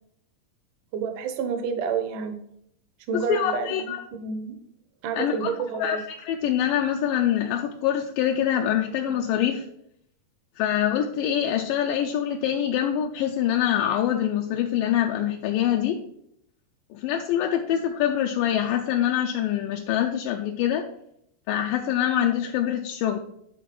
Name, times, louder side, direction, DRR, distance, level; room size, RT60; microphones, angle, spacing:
voice 1, 0.9-2.4 3.1-4.6 5.0-6.0, right 6 dB, 70° right, 7 dB, 2.2 m, -29 dB
voice 2, 3.1-4.0 5.2-5.5 5.8-9.6 10.6-16.0 16.9-20.9 21.5-23.2, left 10 dB, 80° left, 3 dB, 2.1 m, -25 dB
11.0 x 4.1 x 4.7 m, 0.71 s
omnidirectional pair, 4.3 m